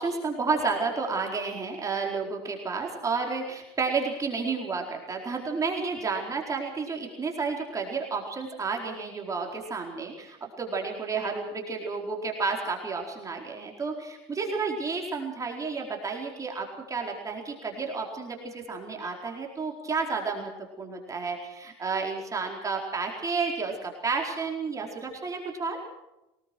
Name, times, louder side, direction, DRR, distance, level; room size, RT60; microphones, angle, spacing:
voice 1, 0.0-20.5 20.8-25.8, right 4 dB, 25° right, 1 dB, 4.5 m, -31 dB
23.5 x 20.0 x 6.3 m, 0.93 s
supercardioid pair, 100°, 14 cm